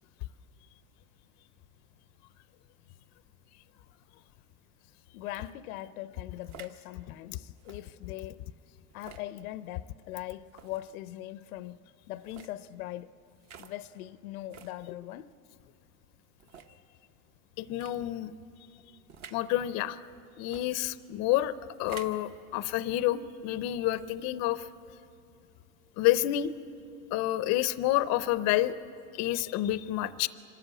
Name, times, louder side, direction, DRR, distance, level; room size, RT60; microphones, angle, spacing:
voice 1, 5.1-8.5 8.9-11.8 12.1-13.1 13.6-15.3, left 14 dB, 85° left, 0.7 m, -41 dB
sound 1, 5.3-5.5 6.4-6.8 7.6-7.8 8.9-9.3 10.5-10.8 12.2-12.5 13.4-13.7 14.5-14.8 15.5-15.6 16.4-16.7 17.7-18.0 19.1-19.4 20.4-20.7 21.7-22.2, right 7 dB, 40° right, 1.0 m, -49 dB
voice 2, 17.6-18.3 19.3-20.1 20.4-24.7 26.0-26.5 27.1-28.7 29.1-30.3, left 14 dB, 40° left, 0.5 m, -29 dB
25.5 x 13.0 x 8.2 m
supercardioid pair, 135°, 42 cm